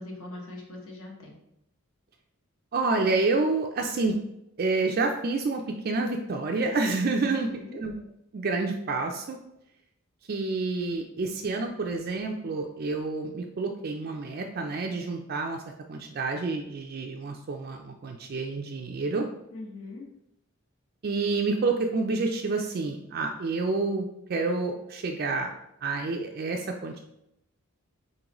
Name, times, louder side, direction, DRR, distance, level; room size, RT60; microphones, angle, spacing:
voice 1, 0.0-1.4 7.4-7.8 19.5-20.0, left 2 dB, 65° left, 0 dB, 1.0 m, -41 dB
voice 2, 2.7-4.2 4.6-7.9 8.3-9.4 10.3-15.6 15.9-19.3 21.0-25.5 25.8-27.0, right 3 dB, 45° right, 2 dB, 0.3 m, -28 dB
4.0 x 3.8 x 2.9 m, 0.82 s
head